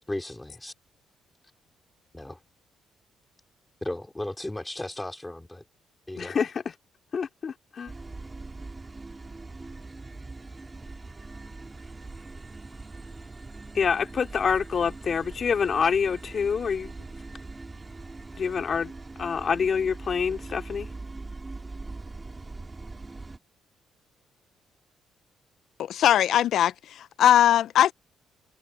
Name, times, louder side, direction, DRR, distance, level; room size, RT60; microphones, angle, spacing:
voice 1, 0.1-0.7 2.1-2.4 3.8-5.6 6.1-6.4, left 1 dB, 10° left, 3.3 m, -35 dB
voice 2, 6.2-6.5 7.1-7.9 13.7-16.9 18.4-18.9 19.2-20.9, left 6 dB, 45° left, 2.5 m, -26 dB
sound 1, 7.9-23.4, right 3 dB, 25° right, 3.1 m, -41 dB
voice 3, 25.8-27.9, left 11 dB, 75° left, 0.4 m, -20 dB
cardioid pair, 90°, 0 cm